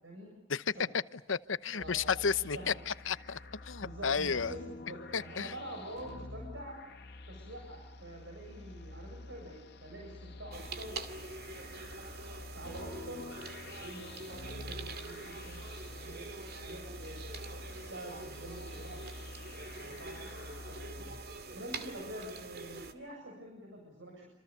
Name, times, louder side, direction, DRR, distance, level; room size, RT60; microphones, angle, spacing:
voice 1, 1.1-4.5 5.1-5.5, left 6 dB, 85° left, 0.9 m, -33 dB
voice 2, 1.7-2.7 3.8-6.8 7.3-13.3 13.8-16.3 16.5-17.6 17.9-19.2 19.7-21.1 21.5-24.2, right 1 dB, 75° right, 7.7 m, -47 dB
sound 1, 1.8-21.2, left 2 dB, 60° left, 2.4 m, -48 dB
sound 2, 10.5-22.9, right 4 dB, 55° right, 2.4 m, -45 dB
27.5 x 27.5 x 6.9 m
head